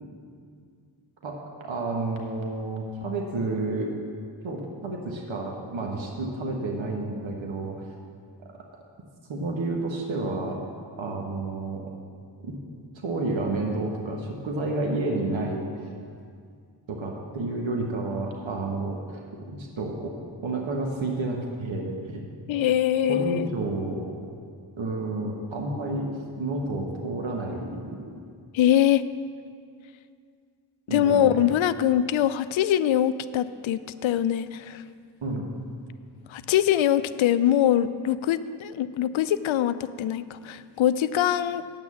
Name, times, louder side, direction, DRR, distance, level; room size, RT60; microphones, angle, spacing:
voice 1, 1.6-3.9 4.4-7.8 9.3-10.6 11.0-11.8 12.4-12.5 12.9-15.9 16.9-19.2 19.6-20.1 20.4-22.2 23.1-24.2 24.8-26.1 26.4-28.0 30.9-31.4 35.2-35.5, right 2 dB, 70° right, 0 dB, 1.4 m, -30 dB
voice 2, 22.5-23.5 28.5-29.0 30.9-34.8 36.3-41.6, left 11 dB, 70° left, 14 dB, 0.5 m, -23 dB
8.9 x 6.2 x 7.4 m, 2.2 s
supercardioid pair, 40°, 49 cm